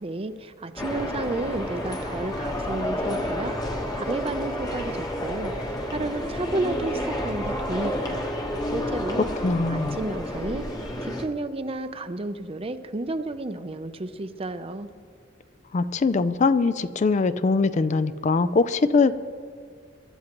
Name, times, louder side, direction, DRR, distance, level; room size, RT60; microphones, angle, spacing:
voice 1, 0.0-8.2 8.7-9.3 9.7-10.7 11.0-14.9, right 2 dB, 30° right, 10 dB, 0.6 m, -32 dB
sound 1, 0.8-11.3, left 1 dB, 20° left, 1.2 m, -30 dB
voice 2, 9.4-10.0 15.7-19.1, left 4 dB, 40° left, 13 dB, 0.4 m, -22 dB
24.5 x 11.5 x 3.0 m, 2.2 s
head